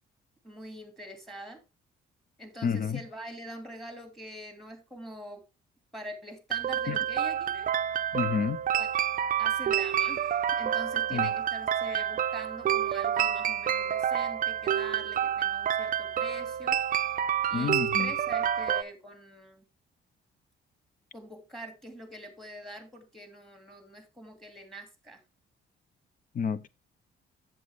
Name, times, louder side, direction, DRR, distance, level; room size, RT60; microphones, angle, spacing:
voice 1, 0.4-1.6 2.4-5.4 5.9-7.7 8.8-8.9 9.4-16.8 17.5-19.7 21.1-25.2, equal, ahead, 2.5 m, -44 dB
voice 2, 2.6-3.0 6.9-7.0 8.1-8.6 11.1-11.3 17.5-18.1 26.3-26.7, left 6 dB, 45° left, 0.7 m, -29 dB
sound 1, 6.5-18.8, right 9 dB, 45° right, 0.5 m, -28 dB
7.7 x 7.3 x 3.5 m
cardioid pair, 90°, 20 cm